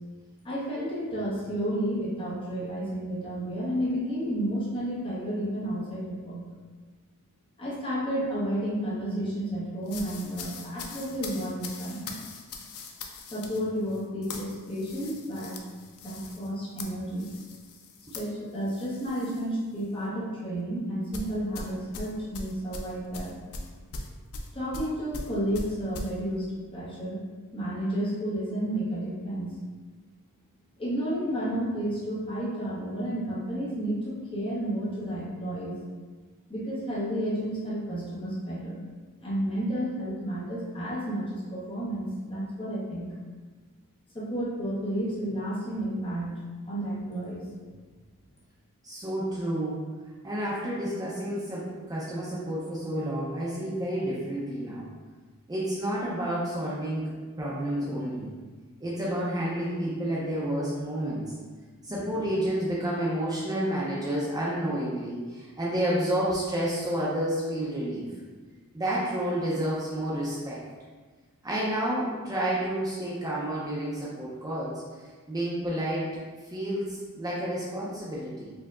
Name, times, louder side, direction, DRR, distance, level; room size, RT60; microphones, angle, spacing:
voice 1, 0.4-6.4 7.6-12.1 13.3-15.6 16.0-17.3 18.1-23.3 24.5-27.2 27.5-29.5 30.8-35.7 36.5-38.8 39.2-43.1 44.1-46.3 46.7-47.5, right 1 dB, 25° left, -7 dB, 1.0 m, -31 dB
sound 1, 9.9-19.5 19.8-20.1 21.1-26.1, left 3 dB, 70° left, 0.4 m, -41 dB
voice 2, 48.8-49.8 50.2-54.8 55.5-58.3 58.8-61.2 61.8-68.1 68.7-70.6 71.4-76.1 76.5-78.5, right 1 dB, 15° right, -6 dB, 0.5 m, -30 dB
4.5 x 2.8 x 2.4 m, 1.4 s
head